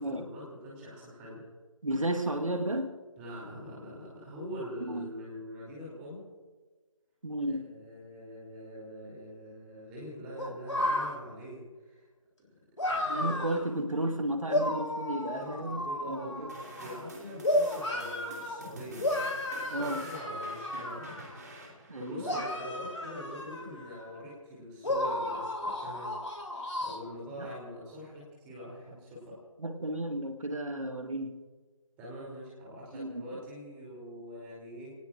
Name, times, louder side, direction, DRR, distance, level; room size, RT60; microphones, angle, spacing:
voice 1, 0.0-1.5 3.2-6.2 7.5-12.1 12.8-13.4 15.3-21.2 21.9-26.1 26.7-29.4 32.0-34.9, equal, 5° right, -5 dB, 2.8 m, -44 dB
voice 2, 1.8-2.9 4.8-5.1 7.2-7.7 13.1-15.8 16.1-16.5 19.7-20.1 21.9-22.4 27.4-27.5 29.6-31.4 32.9-33.4, right 1 dB, 75° right, 6 dB, 1.6 m, -33 dB
sound 1, 10.4-11.1 12.8-13.6 14.5-17.0 17.4-18.6 19.0-21.4 22.2-24.2 24.8-27.0, left 1 dB, 60° left, 3.2 m, -33 dB
sound 2, 16.5-23.0, right 1 dB, 30° right, 2.6 m, -49 dB
28.0 x 18.5 x 2.5 m, 1.3 s
figure-of-eight pair, 165°, 17 cm